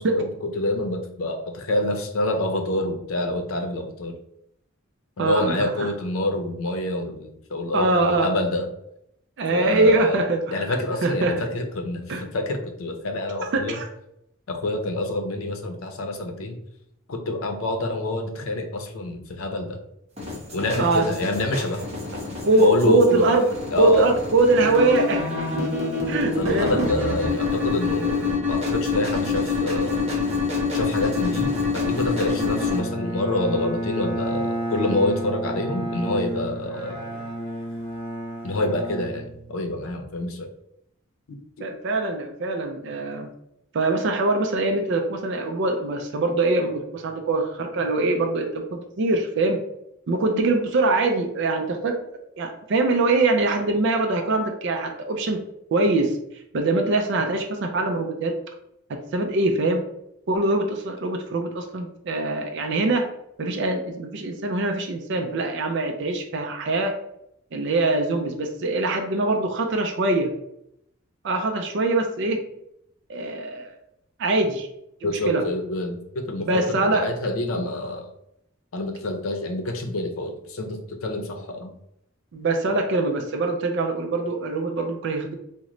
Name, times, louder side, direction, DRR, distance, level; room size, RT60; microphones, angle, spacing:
voice 1, 0.0-4.1 5.2-8.7 9.5-10.2 10.5-13.8 14.5-16.6 17.1-19.8 20.5-21.9 22.6-23.3 23.7-24.1 26.4-30.0 30.7-37.0 38.4-40.5 41.3-41.4 50.3-50.5 75.0-78.1 78.7-81.7, left 1 dB, 90° left, 5 dB, 0.6 m, -27 dB
voice 2, 5.2-5.9 7.7-8.3 9.4-10.8 11.0-11.4 12.1-12.2 13.4-13.8 20.7-21.1 22.4-25.7 26.1-26.9 41.6-43.3 43.7-49.6 50.1-52.0 52.4-55.4 55.7-56.2 56.5-58.4 58.9-59.9 60.3-63.1 63.4-66.9 67.5-70.3 71.2-72.4 73.1-73.7 74.2-74.7 75.0-75.4 76.4-77.1 77.5-77.6 82.3-85.3, right 2 dB, 60° right, 3 dB, 0.4 m, -23 dB
sound 1, 20.2-32.8, left 4 dB, 30° right, 0.9 m, -26 dB
Bowed string instrument, 31.4-39.8, right 1 dB, 30° left, 1.5 m, -31 dB
3.0 x 2.1 x 3.7 m, 0.77 s
head